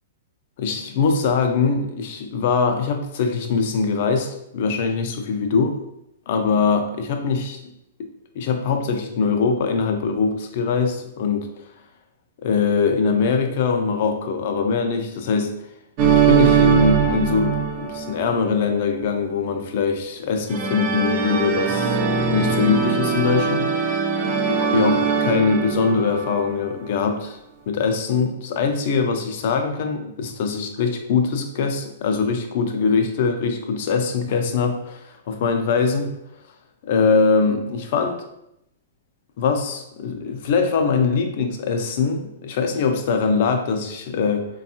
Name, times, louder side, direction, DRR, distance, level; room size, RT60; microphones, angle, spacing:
voice 1, 0.6-5.8 6.3-7.6 8.4-11.5 12.4-15.5 16.1-24.0 24.7-27.4 27.7-36.1 36.8-38.2 39.4-44.5, left 5 dB, 55° left, 5 dB, 0.4 m, -22 dB
sound 1, 16.0-18.6 20.5-26.7, right 6 dB, 45° right, 0.5 m, -21 dB
3.4 x 2.3 x 2.7 m, 0.82 s
hypercardioid pair, 140°, 0 cm